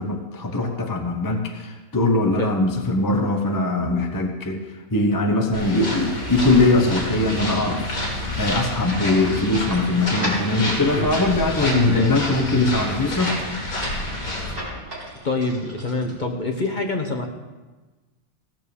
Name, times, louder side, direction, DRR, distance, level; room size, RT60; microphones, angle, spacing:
voice 1, 0.0-4.6 4.9-7.9 8.4-13.4, left 2 dB, 15° left, 3 dB, 0.8 m, -21 dB
sound 1, 5.5-14.5, left 1 dB, 65° left, 3.3 m, -28 dB
sound 2, 8.8-16.7, equal, 35° right, 4.1 m, -36 dB
voice 2, 11.6-12.1 12.5-12.7 15.2-17.3, left 2 dB, 35° left, 3 dB, 1.1 m, -25 dB
16.5 x 6.7 x 7.0 m, 1.2 s
omnidirectional pair, 1.6 m